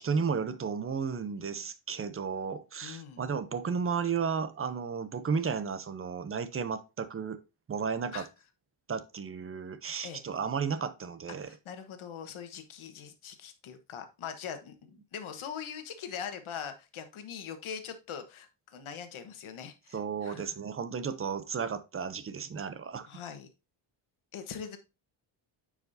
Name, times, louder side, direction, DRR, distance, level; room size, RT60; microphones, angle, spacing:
voice 1, 0.0-7.4 7.7-8.2 8.9-11.5 19.9-23.1, right 6 dB, 30° right, 0.5 m, -33 dB
voice 2, 2.8-3.3 8.1-8.3 10.0-10.2 11.4-20.5 23.0-23.5 24.3-24.8, left 7 dB, 75° left, 1.3 m, -42 dB
9.3 x 4.9 x 2.6 m
wide cardioid pair, 150°, 50 cm